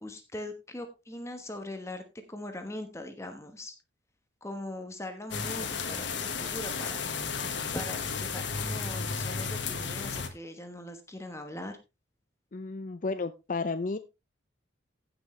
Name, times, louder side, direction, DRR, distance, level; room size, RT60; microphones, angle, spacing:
voice 1, 0.0-2.0 2.3-3.7 4.4-7.1 7.7-11.8, left 1 dB, 15° left, 7 dB, 1.1 m, -41 dB
sound 1, 5.3-10.3, left 5 dB, 70° left, 1.5 m, -33 dB
voice 2, 12.5-14.0, left 3 dB, 45° left, 10 dB, 0.5 m, -32 dB
16.0 x 6.1 x 3.2 m, 0.26 s
head